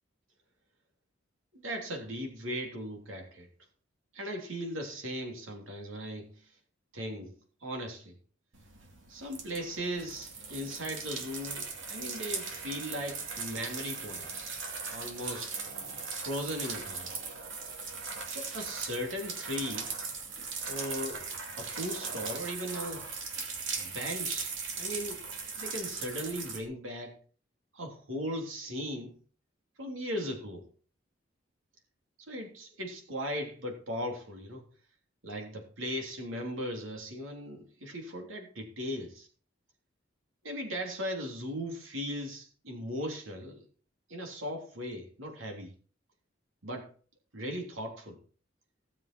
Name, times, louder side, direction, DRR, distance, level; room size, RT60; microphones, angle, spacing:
voice 1, 1.5-3.5 4.1-6.5 6.9-7.3 7.6-8.1 9.1-14.6 14.9-15.5 16.1-17.1 18.3-19.9 20.7-21.2 21.6-23.1 23.8-25.2 25.5-27.2 27.7-29.1 29.8-30.7 32.2-34.6 35.2-39.3 40.4-43.6 44.1-45.7 46.6-46.9 47.3-48.2, equal, 85° right, 3.3 m, -38 dB
sound 1, 8.5-26.6, right 5 dB, 70° right, 2.7 m, -39 dB
17.0 x 7.5 x 4.6 m
head